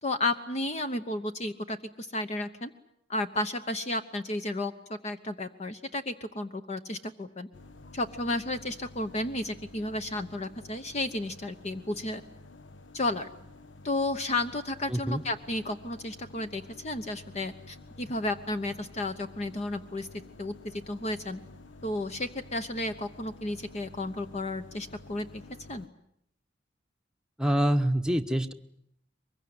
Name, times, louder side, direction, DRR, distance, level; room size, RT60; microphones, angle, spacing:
voice 1, 0.0-2.7 3.1-7.5 7.9-12.2 12.9-13.3 13.8-20.1 20.4-21.4 21.8-25.4 25.7-25.9, left 2 dB, 35° left, 8 dB, 1.0 m, -33 dB
sound 1, 7.5-25.9, left 2 dB, 80° left, 1.1 m, -51 dB
voice 2, 14.9-15.2 27.4-28.5, right 1 dB, 5° right, 6 dB, 1.0 m, -26 dB
24.0 x 22.0 x 9.6 m, 0.76 s
head